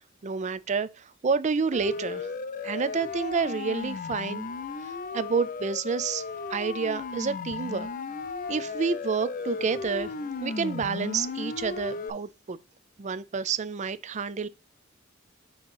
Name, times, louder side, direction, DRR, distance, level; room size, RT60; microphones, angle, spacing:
voice 1, 0.2-2.3 2.6-4.4 4.8-6.2 6.5-7.9 8.5-10.1 10.4-12.6 13.0-14.5, right 5 dB, 35° right, 0.4 m, -29 dB
Siren, 1.7-12.1, left 4 dB, 45° left, 0.5 m, -35 dB
6.3 x 3.0 x 5.4 m
head